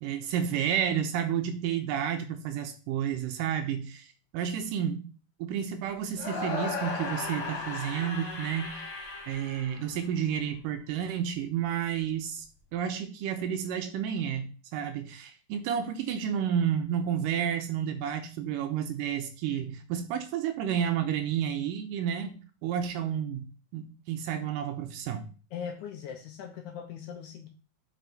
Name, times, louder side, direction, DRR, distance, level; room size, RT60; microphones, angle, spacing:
voice 1, 0.0-4.1 4.3-5.1 5.4-9.0 9.3-12.5 12.7-23.5 23.7-25.2, right 9 dB, 80° right, 7 dB, 2.1 m, -31 dB
sound 1, 6.1-10.3, left 4 dB, 45° left, 2.4 m, -36 dB
voice 2, 25.5-27.5, left 7 dB, 75° left, 3 dB, 1.8 m, -40 dB
6.2 x 5.5 x 4.0 m, 0.37 s
omnidirectional pair, 4.2 m